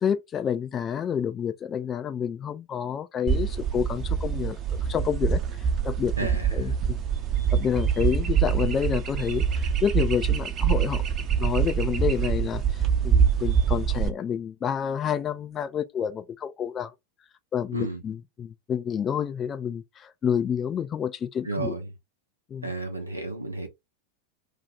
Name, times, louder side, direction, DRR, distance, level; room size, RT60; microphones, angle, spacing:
voice 1, 0.0-4.6 4.9-7.0 7.5-11.0 11.4-16.9 17.5-21.7 22.5-22.7, left 8 dB, 25° left, 0.3 m, -29 dB
sound 1, 3.3-14.1, right 7 dB, 30° right, 0.7 m, -25 dB
voice 2, 6.2-6.7 17.7-18.0 21.4-21.9 22.6-23.7, right 2 dB, 85° right, 0.7 m, -32 dB
2.7 x 2.3 x 4.0 m
figure-of-eight pair, 90°, 0 cm